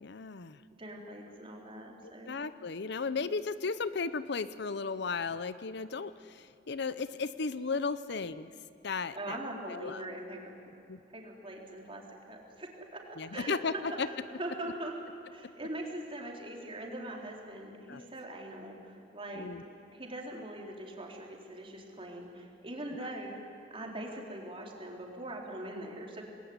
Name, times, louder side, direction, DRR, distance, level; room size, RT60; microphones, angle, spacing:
voice 1, 0.0-0.6 2.0-8.5 8.8-9.4 9.7-10.1 10.9-11.0 13.2-14.1 17.9-18.1 19.4-19.6, left 4 dB, 65° left, 14 dB, 0.7 m, -35 dB
voice 2, 0.8-2.3 9.1-10.5 11.1-13.1 13.3-14.9 15.3-19.5 19.9-23.4 23.7-26.2, right 1 dB, 30° right, 0 dB, 4.0 m, -42 dB
27.0 x 20.5 x 9.7 m, 2.6 s
head